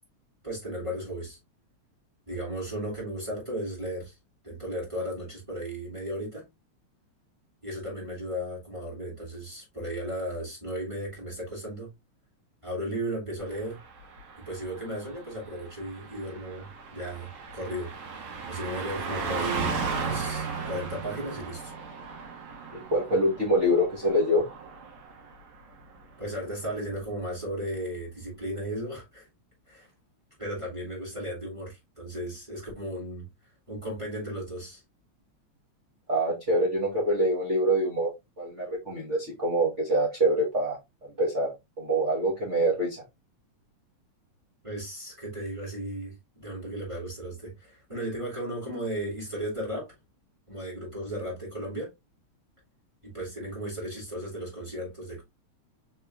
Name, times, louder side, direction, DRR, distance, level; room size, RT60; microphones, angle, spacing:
voice 1, 0.4-1.4 2.3-4.1 4.4-6.5 7.6-11.9 12.6-13.8 14.4-17.9 18.5-21.7 26.2-29.3 29.7-29.9 30.4-33.3 33.7-34.8 44.6-49.9 50.5-51.9 53.0-55.2, right 1 dB, 10° right, 2.3 m, -35 dB
Car passing by, 13.5-25.4 25.7-26.0, right 5 dB, 65° right, 2.6 m, -36 dB
voice 2, 22.7-24.5 36.1-38.1 38.4-43.0, right 1 dB, 40° right, 1.1 m, -25 dB
4.7 x 4.6 x 2.4 m
omnidirectional pair, 3.4 m